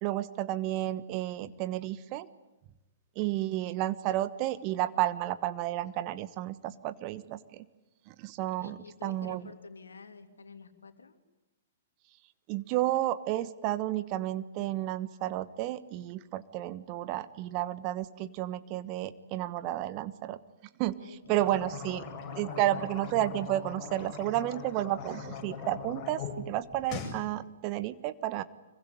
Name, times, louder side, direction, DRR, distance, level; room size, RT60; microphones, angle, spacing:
voice 1, 0.0-2.3 3.1-7.6 8.1-9.4 12.5-20.4 20.8-22.0 22.3-28.4, right 14 dB, 35° right, 13 dB, 1.2 m, -32 dB
voice 2, 8.6-11.2 21.0-22.0, left 4 dB, 70° left, 8 dB, 2.8 m, -49 dB
Gargle Then Spit, 21.2-26.3 26.6-27.2, left 6 dB, 25° left, 7.5 m, -41 dB
25.5 x 23.0 x 9.8 m, 1.0 s
figure-of-eight pair, 110°, 0 cm